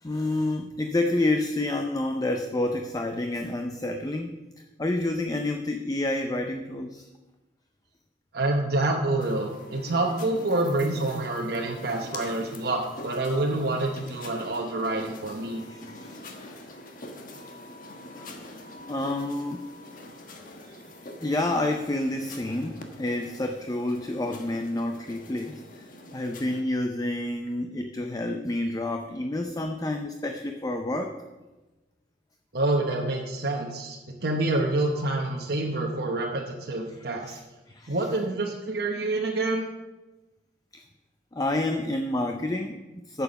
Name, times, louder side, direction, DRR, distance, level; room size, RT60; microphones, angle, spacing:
voice 1, 0.0-4.3 4.8-7.1 15.7-16.5 18.2-18.4 18.9-19.7 21.2-31.2 37.2-37.4 37.7-37.9 40.7-40.8 41.3-43.2, left 2 dB, 20° left, 5 dB, 0.5 m, -29 dB
voice 2, 8.3-15.6 32.5-37.4 37.9-39.7, right 2 dB, 60° right, 0 dB, 1.0 m, -27 dB
sound 1, 9.2-26.6, left 1 dB, 50° left, 1.3 m, -45 dB
9.3 x 7.1 x 7.0 m, 1.1 s
head